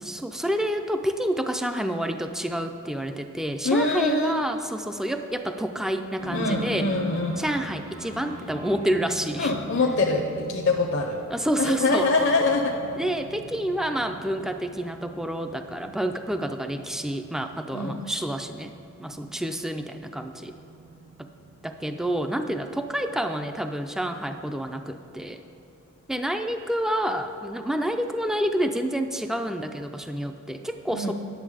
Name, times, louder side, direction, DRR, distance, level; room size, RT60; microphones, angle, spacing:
voice 1, 0.0-6.9 7.4-9.5 11.3-12.1 13.0-18.7 19.0-20.5 21.2-21.3 21.6-25.4 26.1-31.1, right 1 dB, ahead, 7 dB, 0.3 m, -28 dB
voice 2, 3.6-4.4 6.3-7.4 9.4-10.2 10.5-11.2 11.6-12.7 17.7-18.1 30.9-31.1, left 3 dB, 60° left, 1 dB, 0.7 m, -24 dB
sound 1, 6.2-26.1, right 2 dB, 85° right, 1.5 m, -43 dB
10.5 x 7.1 x 4.9 m, 2.9 s
head